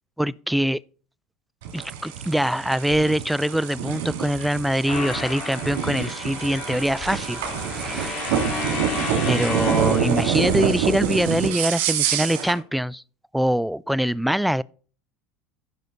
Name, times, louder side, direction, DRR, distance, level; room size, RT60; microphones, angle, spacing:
voice 1, 0.2-0.8 1.7-7.4 7.7-8.2 9.3-13.0 13.3-14.6, equal, ahead, 0.3 m, -23 dB
sound 1, 1.6-12.6, right 8 dB, 85° right, 2.7 m, -26 dB
sound 2, 4.9-10.9, left 4 dB, 55° left, 3.3 m, -33 dB
15.0 x 6.3 x 2.7 m
supercardioid pair, 105°, 0 cm